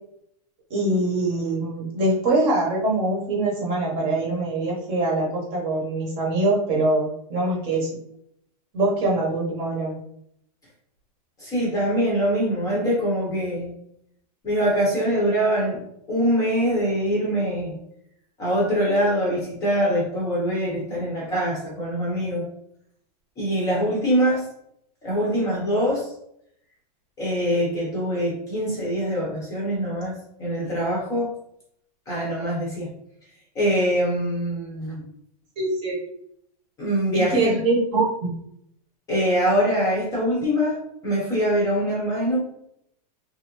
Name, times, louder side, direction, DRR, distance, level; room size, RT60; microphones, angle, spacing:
voice 1, 0.7-7.9 8.7-10.0 35.6-36.0 37.1-38.3, right 2 dB, 25° right, -2 dB, 1.0 m, -23 dB
voice 2, 11.4-13.7 14.4-15.8 16.1-17.8 18.4-22.4 23.4-24.5 25.0-26.1 27.2-31.3 32.1-32.9 33.5-35.0 36.8-37.6 39.1-42.4, equal, 15° left, -4 dB, 0.8 m, -23 dB
3.2 x 2.6 x 3.0 m, 0.72 s
supercardioid pair, 170°, 21 cm